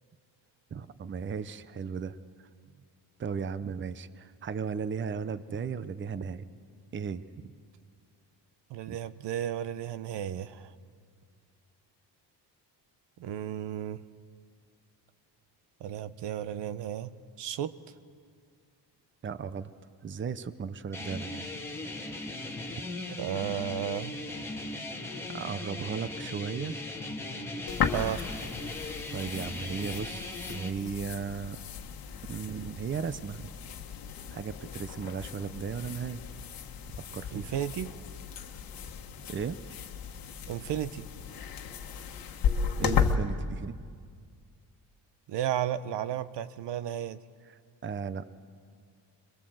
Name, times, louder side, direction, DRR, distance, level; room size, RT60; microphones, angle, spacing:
voice 1, 0.7-2.2 3.2-6.5 6.9-7.5 8.9-9.0 19.2-19.7 20.0-21.5 25.3-26.8 29.1-31.6 32.2-33.5 34.3-36.2 37.1-37.5 39.3-39.6 42.8-43.8 47.5-48.2, right 6 dB, 30° right, 14 dB, 0.7 m, -36 dB
voice 2, 8.7-10.7 13.2-14.0 15.8-17.1 17.4-17.7 23.2-24.2 27.9-28.3 37.3-38.0 40.5-41.1 45.3-47.2, right 10 dB, 80° right, 14 dB, 1.0 m, -33 dB
sound 1, 20.9-30.7, left 2 dB, 5° left, 1.7 m, -38 dB
sound 2, 27.7-43.1, left 7 dB, 55° left, 1.5 m, -35 dB
26.0 x 22.0 x 7.8 m, 2.1 s
cardioid pair, 155°, 41 cm